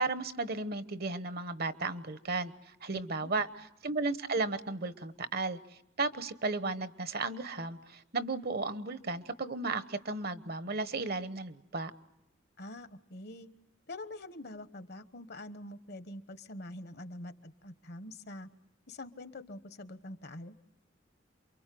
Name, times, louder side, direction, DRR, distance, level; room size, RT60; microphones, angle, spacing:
voice 1, 0.0-2.5 2.8-3.5 3.8-5.6 6.0-11.9, right 3 dB, 55° right, 13 dB, 1.1 m, -34 dB
voice 2, 2.9-3.3 12.6-13.5 13.9-18.5 18.9-20.5, left 1 dB, 60° left, 12 dB, 1.2 m, -45 dB
28.5 x 23.5 x 7.7 m, 0.76 s
head